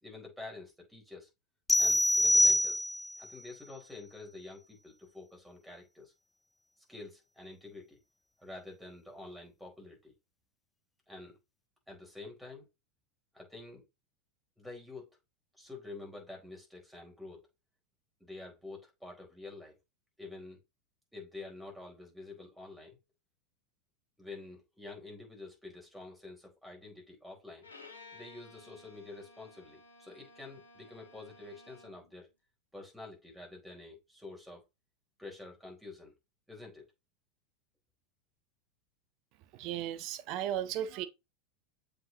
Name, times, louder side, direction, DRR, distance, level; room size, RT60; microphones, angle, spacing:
voice 1, 0.0-1.3 1.8-2.8 3.2-6.1 6.9-8.0 8.4-10.1 11.1-11.4 11.9-12.7 13.3-13.8 14.6-15.1 15.6-17.4 18.2-19.8 20.2-20.6 21.1-23.0 24.2-27.7 28.1-32.3 32.7-34.6 35.2-36.1 36.5-36.9, left 2 dB, ahead, 4.3 m, -48 dB
sound 1, 1.7-3.2, left 1 dB, 15° left, 0.4 m, -25 dB
Bowed string instrument, 27.6-32.1, left 3 dB, 85° left, 1.8 m, -55 dB
voice 2, 39.4-41.1, right 11 dB, 50° right, 0.7 m, -36 dB
7.5 x 5.0 x 2.8 m
hypercardioid pair, 85°, 0 cm